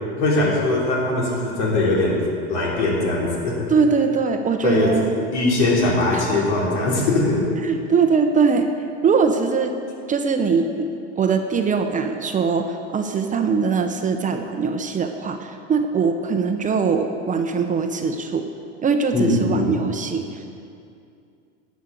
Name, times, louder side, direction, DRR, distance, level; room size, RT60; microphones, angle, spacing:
voice 1, 0.2-2.2 2.5-3.7 4.6-4.9 5.3-7.4 19.1-19.8, left 2 dB, 75° left, -3 dB, 3.4 m, -20 dB
voice 2, 3.7-5.1 6.1-6.4 7.6-8.7 9.0-9.8 10.1-10.9 11.2-18.4 18.8-20.4, right 5 dB, 20° right, 5 dB, 0.7 m, -21 dB
11.0 x 6.3 x 8.3 m, 2.5 s
hypercardioid pair, 110°, 35 cm